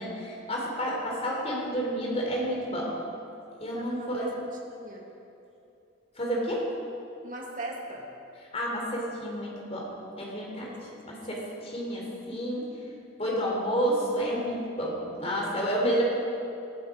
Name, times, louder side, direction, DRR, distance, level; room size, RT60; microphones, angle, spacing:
voice 1, 0.0-2.9 3.6-4.3 6.2-6.7 8.5-9.9 10.2-10.7 11.1-12.7 13.2-16.0, equal, 30° left, -2 dB, 4.0 m, -30 dB
voice 2, 3.7-4.3 4.7-5.1 7.2-8.1 10.6-10.8 11.2-11.5, right 2 dB, 40° right, -2 dB, 2.5 m, -40 dB
20.5 x 13.0 x 5.3 m, 2.7 s
head